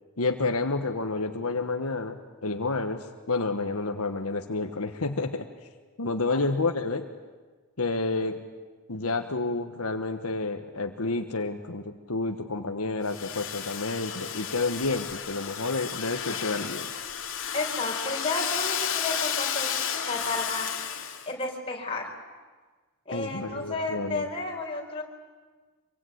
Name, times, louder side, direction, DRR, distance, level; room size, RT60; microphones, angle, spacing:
voice 1, 0.2-5.5 6.0-7.1 7.8-8.4 8.9-16.9 23.1-24.2, left 3 dB, 75° left, 6 dB, 1.4 m, -30 dB
Domestic sounds home sounds, 13.1-21.3, left 8 dB, 60° left, 2.4 m, -32 dB
voice 2, 17.5-20.7 21.3-22.1 23.1-25.0, left 2 dB, 25° left, 0 dB, 4.5 m, -32 dB
25.5 x 23.0 x 9.5 m, 1.4 s
head